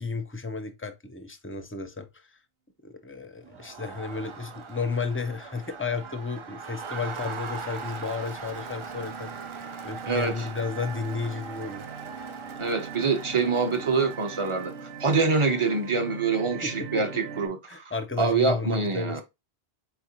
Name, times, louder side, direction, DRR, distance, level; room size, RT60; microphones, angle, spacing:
voice 1, 0.0-2.3 2.8-9.3 9.8-11.9 16.6-17.1 17.7-19.2, left 4 dB, 15° left, 0.5 m, -33 dB
Crowd, 3.4-16.0, right 5 dB, 50° right, 0.3 m, -41 dB
sound 1, 4.3-4.7 5.2-17.5, right 6 dB, 70° right, 1.0 m, -42 dB
voice 2, 10.1-10.4 12.6-14.7 15.0-17.8 18.2-19.2, right 4 dB, 30° right, 0.8 m, -25 dB
4.3 x 4.0 x 2.8 m
omnidirectional pair, 1.1 m